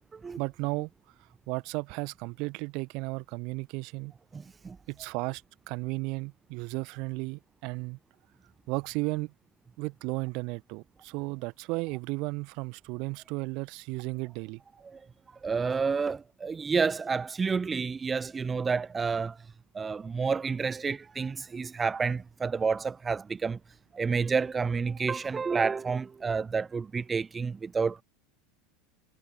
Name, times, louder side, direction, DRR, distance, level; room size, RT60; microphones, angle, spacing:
voice 1, 0.4-0.9 1.5-4.1 4.9-5.4 5.7-8.0 8.7-9.3 9.8-14.6, right 27 dB, 50° right, 1.5 m, -34 dB
voice 2, 4.3-4.8 14.8-15.0 15.4-19.4 19.7-23.6 23.9-28.0, right 5 dB, 20° right, 0.8 m, -29 dB
figure-of-eight pair, 75°, 0 cm